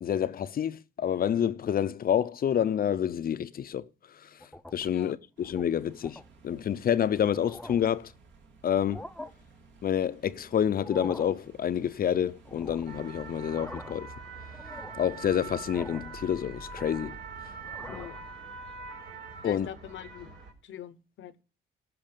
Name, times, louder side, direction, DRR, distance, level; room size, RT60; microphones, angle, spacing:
voice 1, 0.0-3.9 4.7-8.1 8.6-9.1 9.8-14.1 15.0-17.1 19.4-19.7, left 9 dB, 50° left, 0.6 m, -28 dB
sound 1, 4.4-5.0 5.4-5.6 6.0-6.3 6.9-7.0 7.3-8.0 8.7-9.3 10.7-11.4 12.5-13.0 13.4-14.1 14.5-15.1 15.7-16.2 16.5-17.2 17.6-18.2, left 1 dB, 5° left, 0.6 m, -44 dB
sound 2, 5.4-13.5, right 4 dB, 65° right, 2.2 m, -57 dB
sound 3, 12.9-20.5, right 5 dB, 85° right, 3.9 m, -43 dB
voice 2, 17.9-18.2 19.4-20.3 20.6-21.3, left 11 dB, 75° left, 0.9 m, -43 dB
16.5 x 5.7 x 5.2 m
cardioid pair, 90°, 20 cm